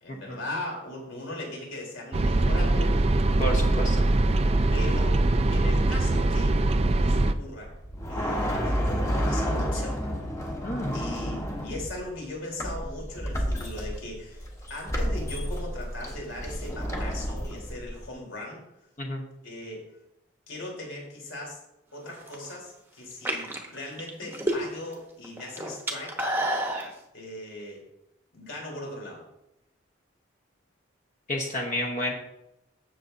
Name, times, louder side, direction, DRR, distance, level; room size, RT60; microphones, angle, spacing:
voice 1, 0.0-3.4 4.7-5.2 5.5-6.6 7.0-7.7 8.1-10.0 10.9-14.4 14.7-18.6 19.4-19.9 20.5-21.6 21.9-26.2 27.1-27.8 28.3-29.2, left 1 dB, 80° left, -1 dB, 3.4 m, -39 dB
sound 1, 2.1-7.3, right 2 dB, 30° right, 0.4 m, -22 dB
voice 2, 3.4-4.0 10.6-10.9 19.0-19.2 31.3-32.1, equal, 40° left, 1 dB, 1.0 m, -30 dB
sound 2, 7.6-12.2 12.6-18.1, equal, 15° left, 1.1 m, -30 dB
sound 3, 22.1-22.5 23.1-24.9 25.2-26.9, right 1 dB, 10° right, 0.9 m, -29 dB
15.0 x 6.7 x 2.6 m, 0.86 s
head